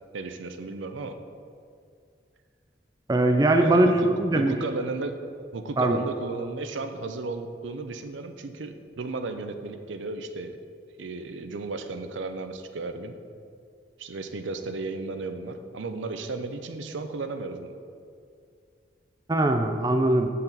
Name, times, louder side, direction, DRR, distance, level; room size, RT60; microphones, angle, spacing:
voice 1, 0.1-1.2 3.6-4.1 4.4-5.2 5.5-10.6 11.0-13.2 14.0-17.8, right 3 dB, 85° right, 8 dB, 0.5 m, -34 dB
voice 2, 3.1-4.5 5.8-6.0 19.3-20.3, right 2 dB, 20° right, 5 dB, 0.3 m, -21 dB
7.2 x 6.7 x 4.0 m, 2.3 s
head